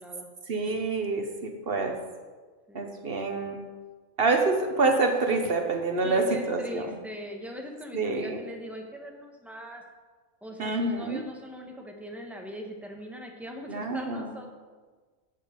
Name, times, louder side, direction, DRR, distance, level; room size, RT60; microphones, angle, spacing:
voice 1, 0.5-2.0 2.7-3.6 4.2-6.9 7.9-8.4 10.6-11.2 13.7-14.4, right 3 dB, 50° right, 4 dB, 1.1 m, -27 dB
voice 2, 6.0-9.8 10.4-14.5, equal, ahead, 1 dB, 1.2 m, -41 dB
11.0 x 7.5 x 5.1 m, 1.4 s
omnidirectional pair, 1.4 m